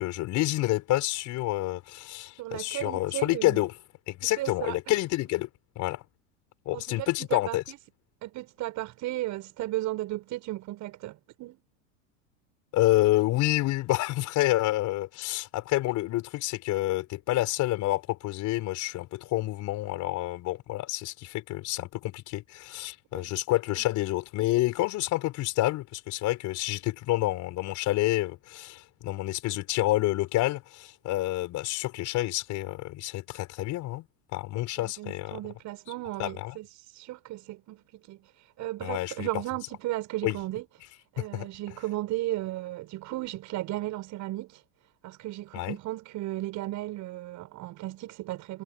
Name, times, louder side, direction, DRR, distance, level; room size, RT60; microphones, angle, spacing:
voice 1, 0.0-3.7 4.1-5.5 5.7-6.0 6.6-7.6 12.7-34.1 34.3-35.4 36.2-36.6 38.8-39.3 40.2-40.4 41.2-41.5 45.5-45.8, left 17 dB, 45° left, 4.7 m, -28 dB
voice 2, 2.4-3.7 4.4-5.0 6.7-7.8 8.2-11.6 23.1-23.3 23.7-23.8 34.8-40.7 41.1-44.6 45.0-48.6, right 16 dB, 45° right, 6.8 m, -35 dB
hypercardioid pair, 95°, 40 cm